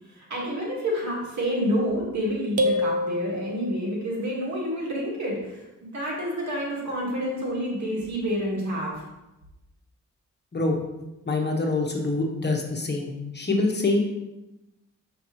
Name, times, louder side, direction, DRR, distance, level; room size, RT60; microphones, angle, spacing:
voice 1, 0.2-8.9, equal, 75° right, -4 dB, 1.9 m, -28 dB
sound 1, 2.6-4.1, left 1 dB, 55° right, 0.9 m, -27 dB
voice 2, 10.5-10.8 11.2-14.0, left 2 dB, 35° left, 1 dB, 1.1 m, -25 dB
7.0 x 5.2 x 3.2 m, 0.98 s
cardioid pair, 85°, 29 cm